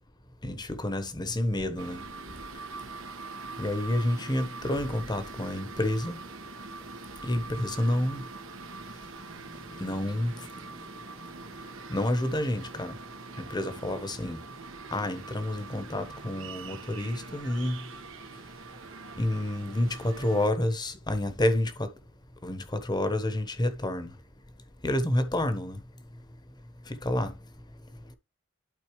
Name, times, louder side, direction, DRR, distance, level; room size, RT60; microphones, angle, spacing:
voice 1, 0.4-2.0 3.6-6.2 7.2-8.2 9.8-10.3 11.9-13.0 13.5-14.4 14.9-17.8 19.2-21.9 22.4-24.1 24.8-25.8 27.0-27.3, left 1 dB, 20° left, 1.1 m, -29 dB
sound 1, 1.8-20.5, right 4 dB, 75° right, 1.5 m, -43 dB
12.0 x 4.2 x 3.2 m
head